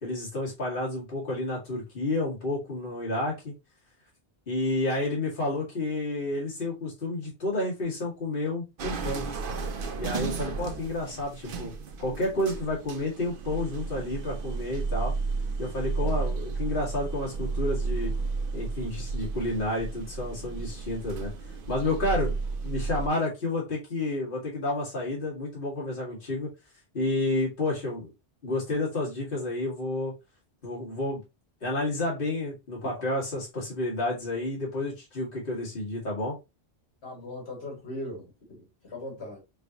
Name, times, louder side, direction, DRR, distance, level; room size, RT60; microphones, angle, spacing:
voice 1, 0.0-3.5 4.5-9.3 10.0-11.7 12.0-15.1 15.6-18.1 18.5-21.3 21.7-22.3 22.6-26.5 26.9-28.1 28.4-30.1 30.6-31.2 31.6-36.4, left 2 dB, 55° left, 1.7 m, -30 dB
sound 1, 8.8-23.1, right 4 dB, 60° right, 0.8 m, -33 dB
voice 2, 37.0-39.4, left 1 dB, 70° left, 1.9 m, -39 dB
5.1 x 2.6 x 2.8 m
omnidirectional pair, 1.1 m